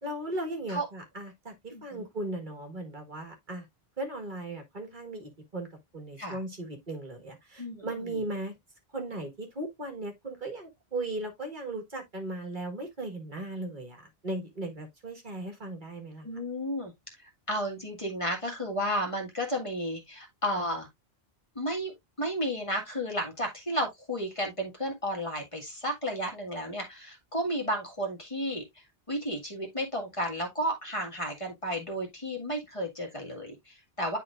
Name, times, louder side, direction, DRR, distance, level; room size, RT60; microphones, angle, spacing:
voice 1, 0.0-3.7 4.0-5.7 5.9-8.5 8.9-16.3, right 2 dB, 50° right, 1.8 m, -37 dB
voice 2, 1.7-2.1 6.2-6.4 7.6-8.2 16.2-16.9 17.2-20.9 21.6-28.6 29.1-34.2, equal, 30° left, 1.8 m, -33 dB
9.9 x 4.0 x 2.4 m
omnidirectional pair, 1.0 m